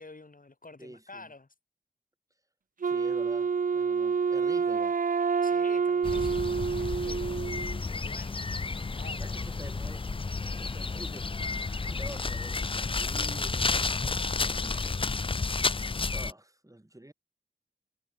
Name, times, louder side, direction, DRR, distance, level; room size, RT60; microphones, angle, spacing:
voice 1, 0.0-1.5 5.4-6.5 7.0-7.6 7.9-8.4 8.8-9.2 14.1-15.1, left 3 dB, 50° left, 6.5 m, -49 dB
voice 2, 0.8-1.3 2.8-5.0 9.2-10.1 10.5-13.8 14.4-15.0 16.1-17.1, right 1 dB, 20° right, 5.8 m, -47 dB
Wind instrument woodwind instrument, 2.8-7.8, right 5 dB, 50° right, 0.5 m, -28 dB
sound 1, 6.0-16.3, left 4 dB, 30° left, 0.5 m, -31 dB
sound 2, 6.4-13.4, equal, 5° right, 5.2 m, -55 dB
wide cardioid pair, 55°, 18 cm